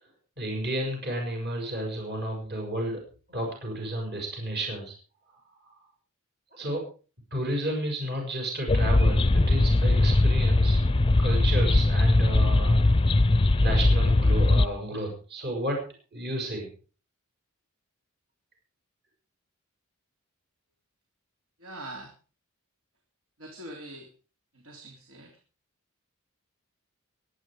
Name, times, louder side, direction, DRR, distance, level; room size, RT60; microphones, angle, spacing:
voice 1, 0.4-3.0 3.3-5.0 5.6-5.7 6.5-6.8 7.3-10.9 11.2-12.8 13.6-15.8 16.1-16.7, right 1 dB, 50° right, 1 dB, 6.7 m, -32 dB
sound 1, 8.7-14.7, left 2 dB, 25° left, 0.6 m, -20 dB
voice 2, 21.6-22.1 23.4-24.1 24.5-25.3, right 1 dB, 70° right, 2 dB, 3.5 m, -43 dB
23.5 x 9.7 x 4.9 m, 0.38 s
head